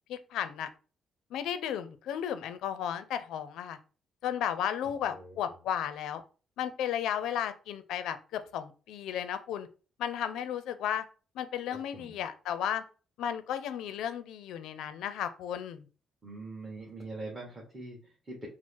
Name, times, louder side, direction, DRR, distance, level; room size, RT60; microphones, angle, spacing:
voice 1, 0.1-0.7 1.3-3.8 4.2-6.2 6.6-9.7 10.0-11.0 11.3-12.8 13.2-15.8, left 9 dB, 85° left, 11 dB, 0.4 m, -34 dB
voice 2, 4.8-5.6 11.7-12.2 16.2-18.5, right 2 dB, 25° right, -3 dB, 1.4 m, -44 dB
4.5 x 2.0 x 4.3 m, 0.37 s
cardioid pair, 90°, 0 cm